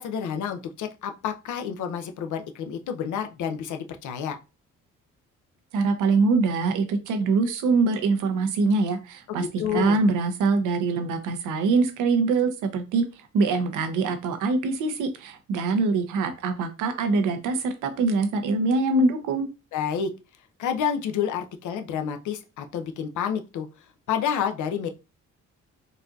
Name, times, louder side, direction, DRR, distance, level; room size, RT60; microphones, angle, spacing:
voice 1, 0.0-4.4 9.3-10.0 19.7-20.1 20.6-23.7 24.1-24.9, left 8 dB, 75° left, 7 dB, 0.6 m, -29 dB
voice 2, 5.7-13.0 13.3-19.5, right 3 dB, 90° right, 7 dB, 0.7 m, -24 dB
4.0 x 2.7 x 2.4 m, 0.29 s
cardioid pair, 90°, 30 cm